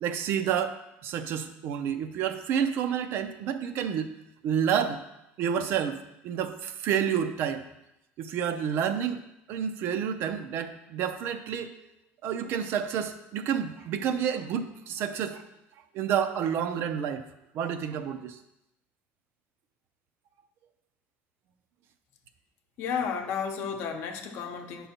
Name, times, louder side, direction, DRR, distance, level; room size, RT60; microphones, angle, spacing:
voice 1, 0.0-4.1 4.4-5.0 5.4-7.7 8.2-9.2 9.5-11.7 12.2-15.4 15.9-17.2 17.5-18.4, right 8 dB, 50° right, 9 dB, 0.5 m, -29 dB
voice 2, 22.8-24.9, left 6 dB, 55° left, 5 dB, 0.8 m, -32 dB
9.0 x 5.5 x 2.8 m, 0.88 s
cardioid pair, 155°, 5 cm